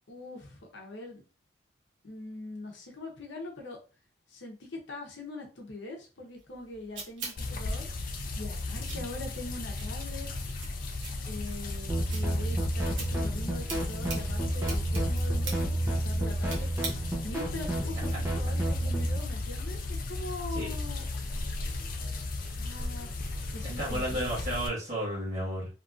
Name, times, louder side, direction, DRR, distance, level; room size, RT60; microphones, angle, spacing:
voice 1, 0.1-1.2 2.0-3.8 4.3-7.9 8.4-10.3 11.3-16.7 17.2-21.1 21.7-22.0 22.6-23.2 23.5-24.3, left 2 dB, 70° left, 1 dB, 0.8 m, -42 dB
sound 1, 6.4-17.4, right 4 dB, 80° right, 1.0 m, -45 dB
sound 2, 7.4-24.7, left 2 dB, 45° left, 0.4 m, -35 dB
sound 3, 11.9-19.2, right 1 dB, 15° right, 0.6 m, -30 dB
voice 2, 23.6-25.7, equal, 35° right, -5 dB, 1.5 m, -33 dB
2.9 x 2.6 x 2.4 m, 0.34 s
head